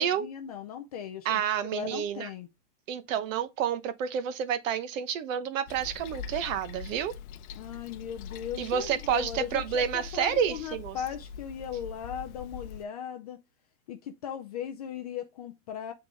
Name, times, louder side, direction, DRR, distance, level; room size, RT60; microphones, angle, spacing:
voice 1, 0.0-1.4 1.7-2.5 7.6-13.4 13.9-15.9, left 9 dB, 25° left, 0.4 m, -38 dB
voice 2, 1.2-2.3 2.9-7.2 8.6-11.0, right 8 dB, 55° right, 1.0 m, -29 dB
Toilet flush, 5.7-12.8, left 7 dB, 60° left, 0.8 m, -43 dB
8.9 x 3.8 x 3.4 m
supercardioid pair, 155°, 47 cm